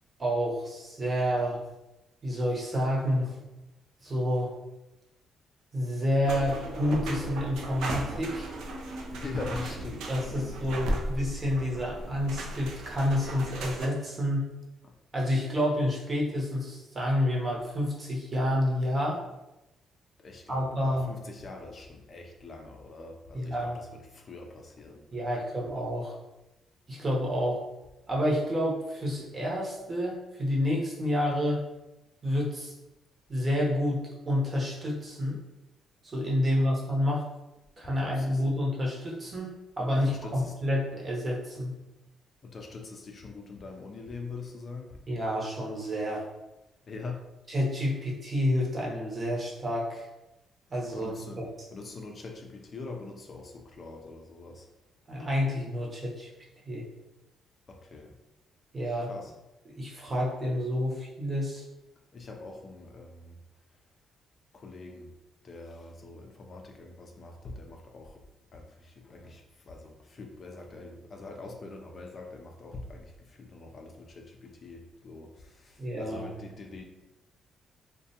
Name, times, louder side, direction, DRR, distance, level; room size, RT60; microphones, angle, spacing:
voice 1, 0.2-1.6 2.2-3.4 4.0-4.5 5.7-8.6 10.1-14.4 15.1-19.2 20.5-21.1 23.3-23.8 25.1-26.1 26.9-27.6 28.1-31.6 32.2-32.7 33.3-35.4 36.0-37.2 37.8-41.7 45.1-46.2 47.5-50.0 50.7-51.5 55.1-56.3 56.7-56.9 58.7-59.1 59.8-61.6 75.8-76.3, equal, 35° right, -3 dB, 0.8 m, -29 dB
sound 1, 6.2-13.9, right 1 dB, 85° right, 0.4 m, -36 dB
voice 2, 9.1-10.0 20.2-23.5 24.1-25.0 38.0-38.4 40.1-40.3 42.4-44.9 46.9-47.2 51.0-51.4 51.7-54.6 57.7-58.1 59.1-59.3 62.1-63.4 64.6-65.1 65.4-68.1 68.5-69.4 69.7-73.1 73.4-75.3 75.6-75.7 76.0-76.8, left 3 dB, 45° left, 2 dB, 0.3 m, -43 dB
2.3 x 2.1 x 2.7 m, 0.96 s
cardioid pair, 90°, 0 cm